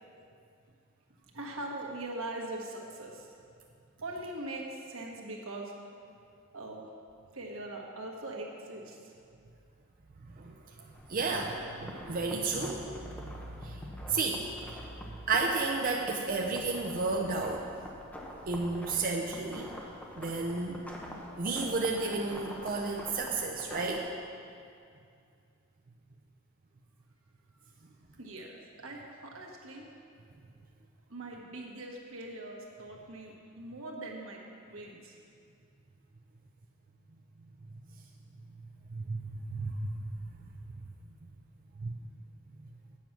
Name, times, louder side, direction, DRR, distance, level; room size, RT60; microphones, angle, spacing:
voice 1, 1.3-3.3 4.0-5.7 6.5-6.8 7.3-9.1 28.2-29.9 31.1-35.2, right 2 dB, 85° right, -1 dB, 1.5 m, -41 dB
sound 1, 10.9-24.0, left 1 dB, 10° left, 1.0 m, -46 dB
voice 2, 11.1-13.3 13.6-13.8 14.1-14.5 14.7-14.8 15.3-17.6 18.5-19.7 20.2-20.8 21.4-24.1 38.9-40.1 41.8-41.9, right 3 dB, 45° right, 1 dB, 0.6 m, -32 dB
8.9 x 7.3 x 6.0 m, 2.4 s
head